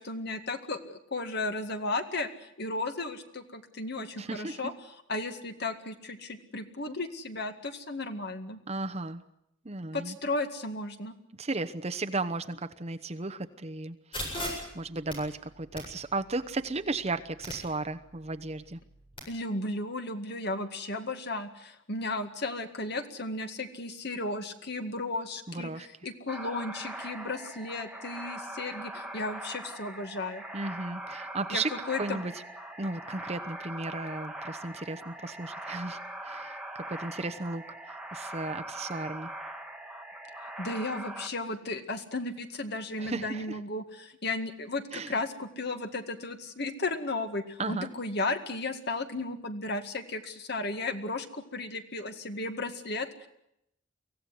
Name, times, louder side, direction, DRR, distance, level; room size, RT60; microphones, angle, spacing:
voice 1, 0.0-4.7 5.1-8.6 9.9-11.1 19.3-30.4 31.5-32.2 40.4-53.3, left 2 dB, 55° left, 7 dB, 2.0 m, -34 dB
voice 2, 4.2-4.6 8.7-9.2 9.6-10.2 11.4-14.5 14.7-18.8 25.5-25.9 30.5-31.7 32.0-32.3 32.8-39.3 43.0-43.6 44.9-45.2 47.6-47.9, right 3 dB, 30° right, 8 dB, 1.0 m, -35 dB
sound 1, 14.1-19.2, left 1 dB, 25° left, 7.9 m, -42 dB
sound 2, 26.3-41.3, right 1 dB, 5° right, 1.9 m, -41 dB
24.0 x 16.5 x 9.5 m, 0.80 s
head